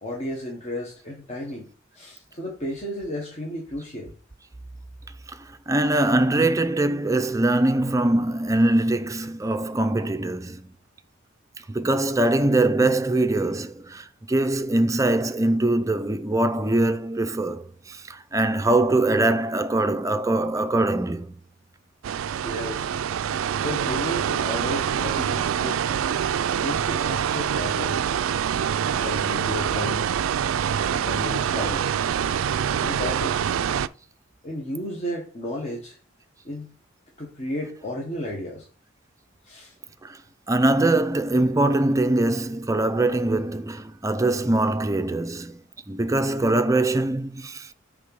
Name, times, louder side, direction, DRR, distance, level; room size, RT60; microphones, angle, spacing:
voice 1, 0.0-1.7 1.9-4.1 22.4-22.9 23.6-25.9 26.5-28.1 29.0-30.1 31.0-31.9 32.8-33.6 34.4-36.0 36.4-36.7 37.2-38.7 39.4-39.7, left 1 dB, 35° left, 1.3 m, -33 dB
voice 2, 5.3-10.8 11.7-21.4 40.0-40.2 40.5-45.6 45.9-47.7, right 2 dB, 15° right, 0.5 m, -22 dB
sound 1, 22.0-33.9, right 8 dB, 85° right, 0.3 m, -25 dB
6.6 x 3.6 x 5.3 m
head